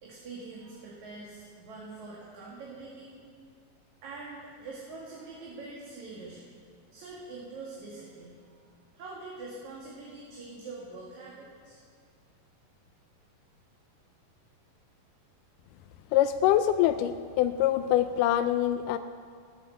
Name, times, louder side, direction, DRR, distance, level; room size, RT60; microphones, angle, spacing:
voice 1, 0.0-3.1 4.0-6.5 6.9-8.7 9.0-11.8, right 3 dB, 60° right, -4 dB, 3.3 m, -44 dB
voice 2, 16.1-19.0, left 12 dB, 80° left, 9 dB, 2.1 m, -24 dB
16.5 x 12.5 x 6.7 m, 2.1 s
omnidirectional pair, 3.8 m